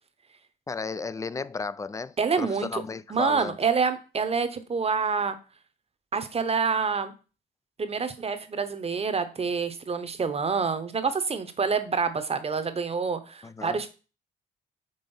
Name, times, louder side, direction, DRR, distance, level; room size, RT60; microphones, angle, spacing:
voice 1, 0.7-3.6 13.4-13.8, left 4 dB, 15° left, 0.3 m, -34 dB
voice 2, 2.2-2.8 3.1-5.4 6.1-7.1 7.8-13.9, right 5 dB, 30° right, 0.9 m, -27 dB
5.5 x 3.7 x 5.4 m
cardioid pair, 90°, 20 cm